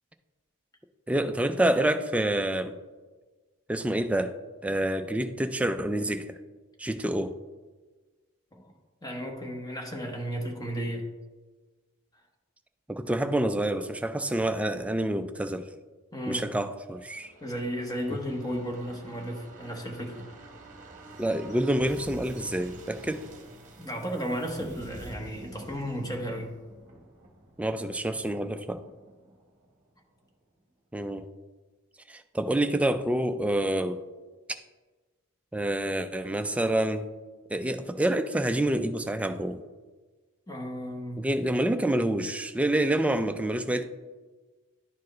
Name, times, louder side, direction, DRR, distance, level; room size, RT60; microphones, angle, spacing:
voice 1, 1.1-2.7 3.7-4.3 4.6-6.4 6.8-7.4 12.9-15.7 16.3-17.3 18.1-18.2 21.2-23.2 27.6-28.8 30.9-31.2 32.1-34.0 35.5-37.1 37.5-39.6 41.2-43.8, right 1 dB, 5° right, 8 dB, 0.3 m, -27 dB
voice 2, 9.0-11.1 16.1-16.4 17.4-20.2 23.8-26.5 40.5-41.2, equal, 15° left, 2 dB, 1.0 m, -34 dB
sound 1, 16.8-30.3 30.6-30.7, right 1 dB, 35° right, 1.1 m, -48 dB
11.0 x 4.5 x 3.2 m, 1.3 s
head